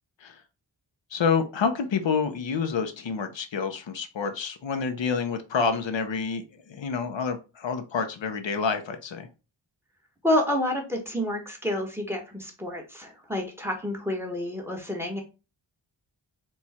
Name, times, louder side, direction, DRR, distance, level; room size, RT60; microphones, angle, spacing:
voice 1, 1.1-9.3, left 5 dB, 75° left, 7 dB, 0.7 m, -28 dB
voice 2, 10.2-15.2, left 1 dB, 5° right, 2 dB, 1.2 m, -29 dB
4.6 x 2.3 x 4.2 m, 0.31 s
wide cardioid pair, 95°, 46 cm